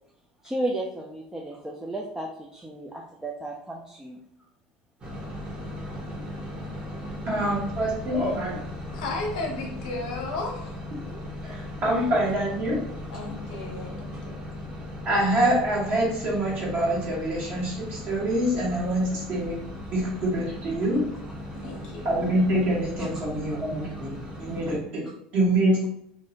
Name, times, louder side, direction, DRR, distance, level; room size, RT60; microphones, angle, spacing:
voice 1, 0.4-4.2 11.9-12.0, right 1 dB, 10° right, -1 dB, 0.4 m, -33 dB
sound 1, 5.0-24.8, left 1 dB, 30° right, 1.0 m, -38 dB
voice 2, 7.2-8.6 11.4-12.8 15.0-19.6 19.9-21.0 22.0-25.0 25.3-25.8, right 1 dB, 50° right, -5 dB, 1.3 m, -25 dB
voice 3, 8.9-10.7 13.1-14.5 21.5-22.2, left 2 dB, 80° left, 0 dB, 0.7 m, -34 dB
2.5 x 2.1 x 2.7 m, 0.76 s
hypercardioid pair, 80°, 4 cm